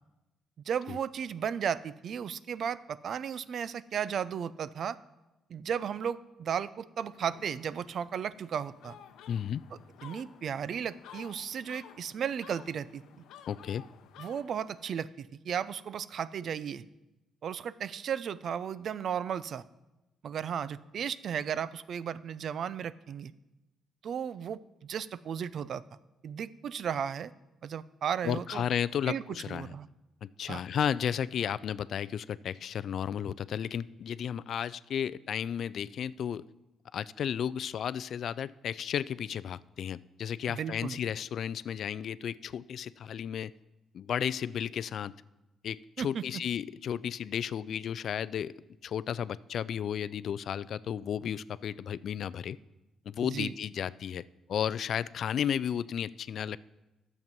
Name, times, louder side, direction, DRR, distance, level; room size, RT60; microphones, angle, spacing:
voice 1, 0.7-5.0 5.5-9.0 10.0-13.0 14.2-16.9 17.4-19.6 20.2-23.3 24.0-25.8 26.2-27.3 27.6-28.6 29.1-29.9 30.5-30.6 40.5-41.0 46.0-46.4 53.2-53.5, right 8 dB, 60° right, 18 dB, 0.4 m, -35 dB
sound 1, 7.0-14.9, left 9 dB, 90° left, 0.6 m, -53 dB
voice 2, 9.3-9.6 13.5-13.8 28.2-29.7 30.2-36.5 36.9-43.5 43.9-45.1 45.6-48.5 48.8-52.6 53.1-54.2 54.5-56.6, left 8 dB, 65° left, 18 dB, 0.3 m, -33 dB
10.5 x 7.2 x 5.3 m, 1.0 s
cardioid pair, 90°, 0 cm